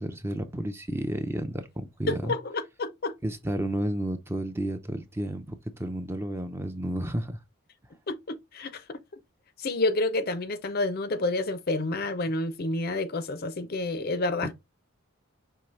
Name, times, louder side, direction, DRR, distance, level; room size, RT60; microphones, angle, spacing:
voice 1, 0.0-2.4 3.2-7.4, right 1 dB, 10° right, 0.5 m, -31 dB
voice 2, 2.1-3.1 8.1-9.0 9.6-14.5, left 2 dB, 45° left, 0.5 m, -29 dB
5.6 x 2.8 x 3.1 m
head